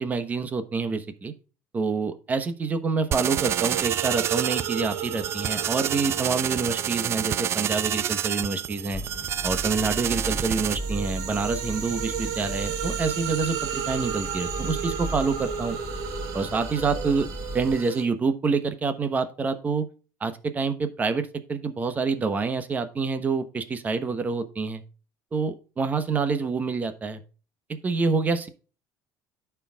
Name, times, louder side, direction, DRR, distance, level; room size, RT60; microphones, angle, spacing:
voice 1, 0.0-1.3 1.7-9.0 9.4-15.8 16.3-17.3 17.5-19.9 20.2-24.8 25.3-27.2 27.7-28.5, right 4 dB, 25° right, 10 dB, 1.0 m, -27 dB
sound 1, 3.1-10.8, right 10 dB, 40° right, 0.4 m, -28 dB
sound 2, 3.4-9.7 10.2-18.0, right 9 dB, 65° right, 1.5 m, -34 dB
sound 3, 8.9-17.8, equal, 20° left, 0.7 m, -36 dB
14.0 x 4.7 x 2.3 m, 0.36 s
cardioid pair, 130°, 7 cm